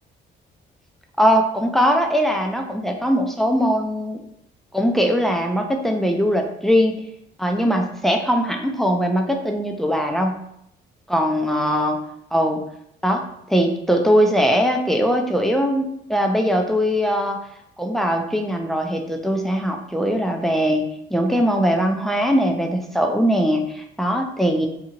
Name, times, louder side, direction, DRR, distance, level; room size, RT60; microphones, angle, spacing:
voice 1, 1.2-4.2 4.7-7.0 7.4-10.4 11.1-12.0 12.3-12.6 13.0-13.2 13.5-17.4 17.8-24.7, equal, ahead, 2 dB, 0.4 m, -20 dB
2.7 x 2.4 x 2.8 m, 0.75 s
cardioid pair, 90°, 20 cm